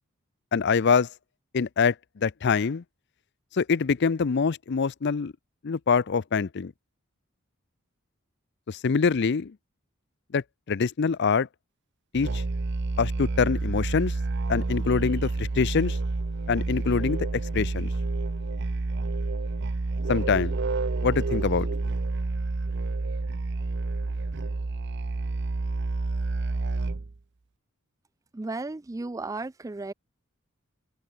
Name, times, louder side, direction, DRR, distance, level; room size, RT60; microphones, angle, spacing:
voice 1, 0.5-1.1 1.5-2.8 3.5-5.3 5.6-6.7 8.7-9.5 10.3-11.5 12.1-12.4 13.0-14.1 14.5-16.0 16.5-17.9 20.1-20.5 21.0-21.7, left 5 dB, 50° left, 0.5 m, -25 dB
Musical instrument, 12.1-27.2, right 3 dB, 55° right, 0.7 m, -29 dB
voice 2, 28.3-29.9, right 3 dB, 15° right, 0.4 m, -34 dB
open air
head